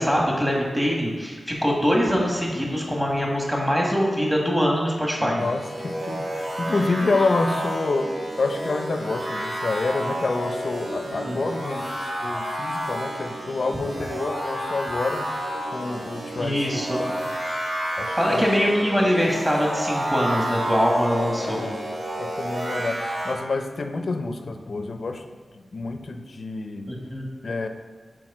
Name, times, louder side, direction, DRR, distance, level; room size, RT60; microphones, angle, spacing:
voice 1, 0.0-5.4 11.2-11.4 16.4-17.0 18.2-21.6 26.9-27.3, equal, 10° right, -2 dB, 1.5 m, -23 dB
voice 2, 5.2-12.0 12.2-17.7 18.0-18.4 19.0-19.1 21.4-21.9 22.2-25.3 25.5-26.9 27.4-27.7, left 3 dB, 60° left, 7 dB, 0.5 m, -28 dB
sound 1, 5.4-23.3, right 1 dB, 70° right, 1.5 m, -30 dB
6.1 x 4.7 x 4.8 m, 1.4 s
wide cardioid pair, 80°, 0 cm